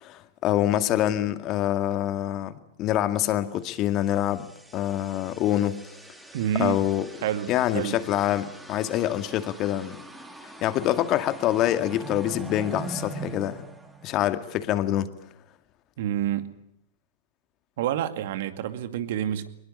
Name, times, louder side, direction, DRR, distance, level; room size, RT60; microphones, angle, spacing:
voice 1, 0.0-4.5 4.7-5.8 6.6-7.1 7.5-10.0 10.6-13.7 14.0-15.1, left 12 dB, 40° left, 2.1 m, -25 dB
sound 1, 3.9-14.6, right 2 dB, 5° right, 4.1 m, -42 dB
voice 2, 6.3-6.8 7.2-8.0 16.0-16.6 17.8-19.5, right 11 dB, 60° right, 2.3 m, -28 dB
23.0 x 21.0 x 9.8 m
hypercardioid pair, 105°, 0 cm